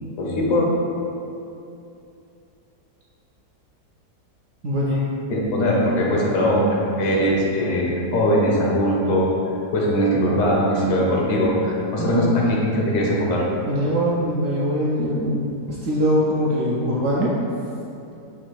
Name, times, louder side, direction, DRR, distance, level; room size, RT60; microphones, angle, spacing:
voice 1, 0.2-0.7 5.3-9.3 9.7-13.5, equal, 85° left, -3 dB, 1.4 m, -20 dB
voice 2, 4.6-5.0 12.0-12.3 13.7-15.5 15.8-17.3, equal, 70° right, -6 dB, 0.7 m, -22 dB
4.6 x 2.5 x 4.5 m, 2.7 s
omnidirectional pair, 1.7 m